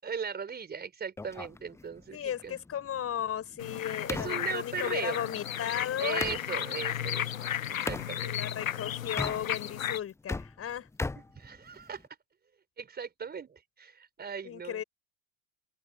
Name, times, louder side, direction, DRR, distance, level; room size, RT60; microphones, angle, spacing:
voice 1, 0.0-2.6 4.1-5.2 6.0-8.4 11.4-12.1 12.8-14.8, right 6 dB, 25° right, 4.7 m, -38 dB
sound 1, 1.2-6.5 7.9-8.1 9.0-9.8 10.1-12.1, left 3 dB, 5° left, 0.8 m, -39 dB
voice 2, 2.1-6.2 8.2-10.9 14.4-14.8, left 9 dB, 35° left, 7.9 m, -35 dB
sound 2, 3.6-10.0, left 10 dB, 85° left, 0.8 m, -34 dB
open air
hypercardioid pair, 80°, 40 cm